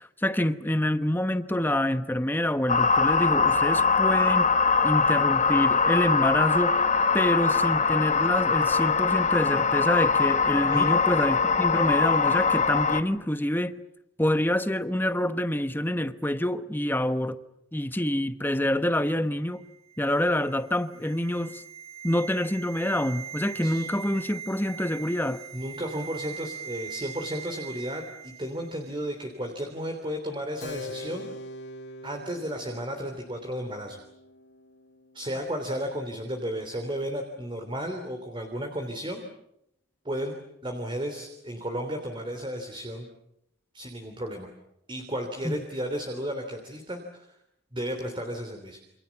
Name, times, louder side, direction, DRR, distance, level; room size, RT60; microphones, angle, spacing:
voice 1, 0.0-4.5 4.8-6.7 7.1-13.7 14.2-17.4 17.7-19.6 20.0-21.6 22.0-25.4 45.4-45.5, left 1 dB, 10° left, 1.1 m, -26 dB
sound 1, 2.7-13.0, left 5 dB, 35° left, 1.3 m, -22 dB
sound 2, 19.5-28.8 29.0-29.2, right 7 dB, 85° right, 2.2 m, -42 dB
voice 2, 25.5-31.3 32.0-34.0 35.1-39.2 40.0-40.3 40.6-43.1 43.7-44.5 44.9-47.3 47.7-48.8, equal, 25° right, 3.2 m, -33 dB
Keyboard (musical), 30.6-36.7, left 2 dB, 55° left, 2.2 m, -44 dB
28.5 x 27.0 x 7.2 m
head